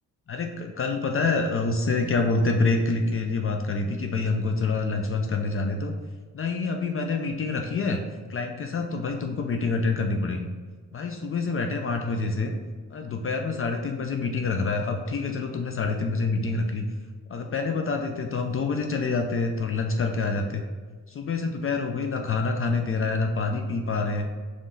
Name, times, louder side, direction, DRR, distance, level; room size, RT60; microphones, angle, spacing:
voice 1, 0.3-5.9 6.3-8.0 8.3-10.5 10.9-12.5 12.9-16.8 17.3-20.6 21.1-24.3, left 3 dB, 45° left, 4 dB, 0.4 m, -27 dB
3.8 x 3.1 x 3.8 m, 1.5 s
wide cardioid pair, 120°, 32 cm